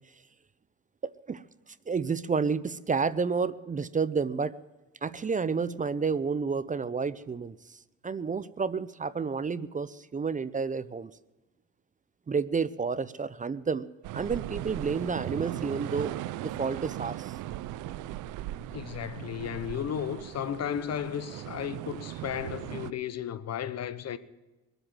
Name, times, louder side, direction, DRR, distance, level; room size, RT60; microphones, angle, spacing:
voice 1, 1.0-1.4 1.9-4.5 5.0-7.8 8.0-11.1 12.3-13.9 14.1-16.1 16.4-17.3, right 5 dB, 25° right, 0.6 m, -30 dB
sound 1, 14.0-22.9, right 14 dB, 90° right, 0.6 m, -38 dB
voice 2, 18.7-24.2, left 9 dB, 55° left, 1.0 m, -34 dB
22.5 x 8.1 x 7.5 m
cardioid pair, 90°, 30 cm